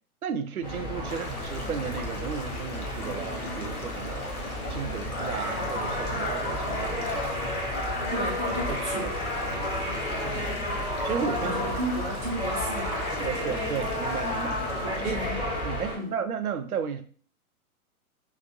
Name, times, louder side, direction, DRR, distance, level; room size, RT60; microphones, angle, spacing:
voice 1, 0.2-4.3 4.7-7.5 8.1-8.3 8.9-9.1 9.4-11.7 13.1-15.2 15.6-17.0, right 7 dB, 80° right, 0.6 m, -34 dB
sound 1, 0.6-16.0, left 1 dB, 15° left, 1.2 m, -31 dB
Stream / Gurgling / Trickle dribble, 1.0-16.2, left 2 dB, 85° left, 0.9 m, -42 dB
voice 2, 8.1-9.1 11.4-13.7 14.8-15.5 15.9-16.2, right 1 dB, 20° right, 0.3 m, -34 dB
3.2 x 3.0 x 2.5 m
figure-of-eight pair, 115°, 44 cm